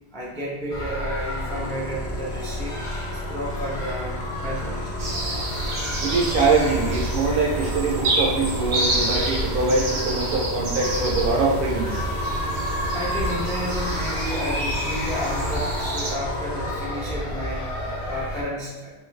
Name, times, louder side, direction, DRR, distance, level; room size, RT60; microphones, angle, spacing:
voice 1, 0.1-2.8 3.3-4.9 12.9-17.7 18.1-18.9, equal, 5° left, -4 dB, 0.3 m, -31 dB
sound 1, 0.7-18.4, equal, 35° left, 0.7 m, -31 dB
sound 2, 1.1-16.9, left 2 dB, 70° left, 0.8 m, -38 dB
sound 3, 5.0-16.1, right 1 dB, 85° right, 1.0 m, -29 dB
voice 2, 6.0-12.0, right 3 dB, 60° right, -1 dB, 0.7 m, -23 dB
3.0 x 2.4 x 3.1 m, 1.2 s
omnidirectional pair, 1.1 m